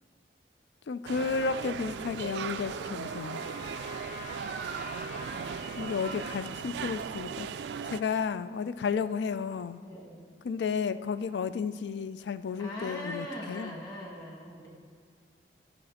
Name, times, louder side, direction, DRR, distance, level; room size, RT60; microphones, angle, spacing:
voice 1, 0.9-3.4 5.8-7.5 7.9-9.8 10.4-13.8, left 5 dB, 80° left, 14 dB, 0.3 m, -32 dB
sound 1, 1.1-8.0, right 6 dB, 80° right, 0.3 m, -37 dB
Trumpet, 1.9-6.4, left 3 dB, 45° left, 0.9 m, -46 dB
voice 2, 5.3-5.9 9.8-10.2 12.6-14.7, left 1 dB, 25° left, -1 dB, 1.5 m, -41 dB
11.5 x 4.2 x 6.4 m, 2.2 s
head